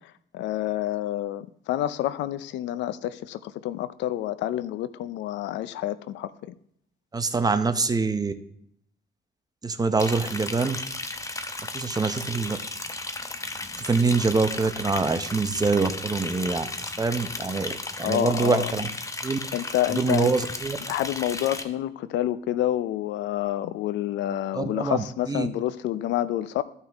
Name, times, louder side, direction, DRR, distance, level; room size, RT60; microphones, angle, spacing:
voice 1, 0.3-6.5 18.0-18.7 19.5-20.3 20.9-26.6, left 13 dB, 85° left, 16 dB, 0.5 m, -28 dB
voice 2, 7.1-8.3 9.6-10.8 11.7-12.6 13.8-16.7 17.0-18.9 19.2-19.4 19.9-20.8 24.5-25.5, right 4 dB, 20° right, 9 dB, 0.8 m, -25 dB
Liquid, 10.0-21.6, left 2 dB, 15° left, 0.9 m, -35 dB
14.0 x 5.6 x 3.5 m, 0.68 s
cardioid pair, 100°, 18 cm